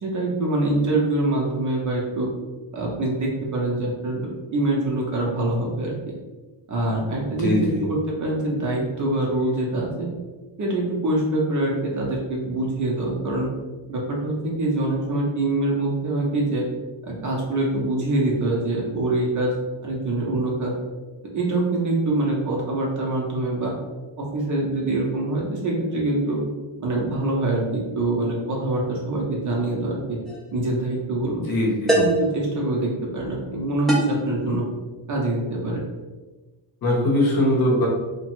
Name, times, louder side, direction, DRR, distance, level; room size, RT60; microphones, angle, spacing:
voice 1, 0.0-2.3 2.7-6.0 6.7-7.5 7.8-10.1 10.6-13.5 13.9-16.6 17.0-19.5 19.8-20.7 21.3-23.7 24.2-26.4 26.8-30.2 30.5-31.4 32.0-34.6 35.1-35.8, right 2 dB, 40° right, -2 dB, 0.7 m, -24 dB
voice 2, 7.4-7.9 31.5-32.0 34.5-34.6 36.8-37.9, left 1 dB, 45° left, -2 dB, 0.9 m, -21 dB
sound 1, 30.3-30.5 31.9-32.3 33.9-34.3, right 1 dB, ahead, 0.5 m, -21 dB
2.9 x 2.2 x 3.0 m, 1.2 s
cardioid pair, 130°, 48 cm